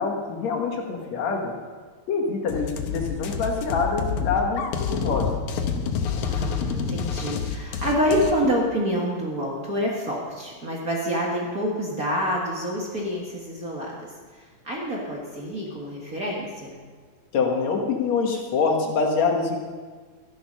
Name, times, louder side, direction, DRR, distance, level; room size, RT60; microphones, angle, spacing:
voice 1, 0.0-1.5 2.1-5.3 17.3-19.6, left 4 dB, 70° left, 1 dB, 2.7 m, -25 dB
sound 1, 2.5-8.3, left 6 dB, 85° left, 2.5 m, -28 dB
voice 2, 6.3-13.9 14.3-16.7, equal, 35° right, -3 dB, 1.8 m, -27 dB
13.0 x 11.5 x 5.5 m, 1.5 s
omnidirectional pair, 3.3 m